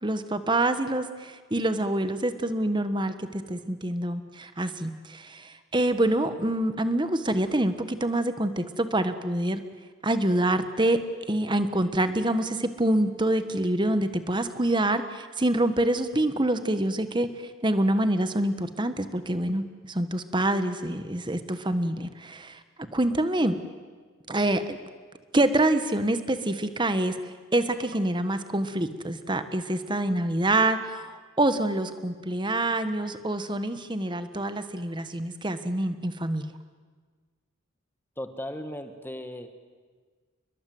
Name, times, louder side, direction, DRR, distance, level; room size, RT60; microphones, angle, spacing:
voice 1, 0.0-9.6 10.0-11.0 11.3-17.3 17.6-19.6 19.9-22.6 22.9-23.6 24.3-24.8 25.3-27.2 27.5-36.5, right 1 dB, 25° right, 10 dB, 1.3 m, -26 dB
voice 2, 38.2-39.5, left 1 dB, 10° left, 8 dB, 1.6 m, -36 dB
30.0 x 21.5 x 7.9 m, 1.5 s
head